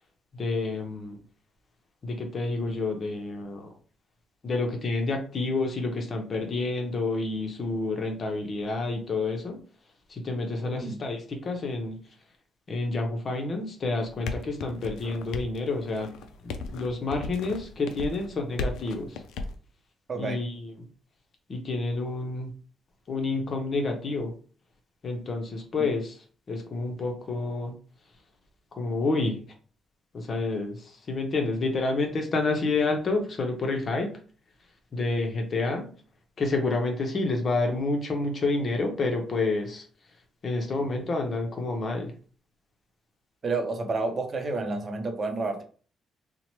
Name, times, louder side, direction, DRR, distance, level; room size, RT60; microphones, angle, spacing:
voice 1, 0.3-1.2 2.0-3.7 4.4-9.6 10.1-12.0 12.7-16.1 16.4-19.2 20.1-20.9 21.5-22.5 23.1-24.3 25.0-26.1 26.5-27.7 28.8-29.4 30.1-34.1 34.9-35.8 36.4-39.8 40.4-42.1, left 3 dB, 45° left, 3 dB, 0.7 m, -29 dB
voice 2, 10.6-11.0 20.1-20.4 43.4-45.6, right 3 dB, 40° right, 5 dB, 0.6 m, -30 dB
sound 1, 14.0-19.6, left 3 dB, 85° left, 0.3 m, -37 dB
2.8 x 2.1 x 2.9 m, 0.40 s
cardioid pair, 90°, 0 cm